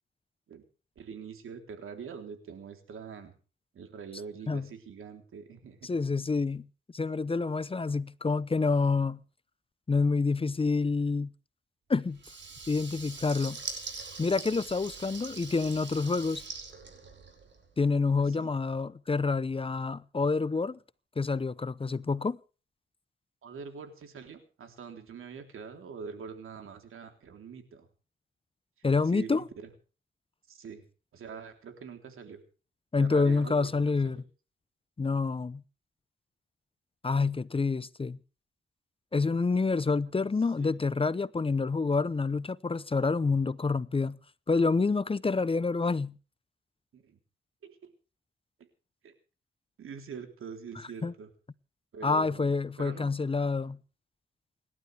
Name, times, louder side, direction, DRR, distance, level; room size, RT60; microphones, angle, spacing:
voice 1, 1.0-3.3 3.7-5.9 18.2-18.5 23.4-27.9 28.9-29.7 30.5-30.8 31.1-32.4 33.0-34.2 40.1-40.2 40.6-40.8 46.9-47.2 47.6-47.9 48.6-48.7 49.0-49.1 49.8-51.3 51.9-53.1, right 6 dB, 80° right, 3.5 m, -44 dB
voice 2, 5.8-6.7 6.9-9.2 9.9-11.3 11.9-12.2 12.7-13.6 14.2-16.4 17.8-20.8 21.2-22.4 28.8-29.5 32.9-34.2 35.0-35.6 37.0-38.2 39.1-44.2 44.5-46.2 51.0-51.1 52.0-53.8, left 4 dB, 25° left, 0.7 m, -28 dB
Water tap faucet / Liquid, 12.1-17.7, right 4 dB, 60° right, 5.8 m, -43 dB
28.5 x 12.0 x 3.4 m
cardioid pair, 80°, 21 cm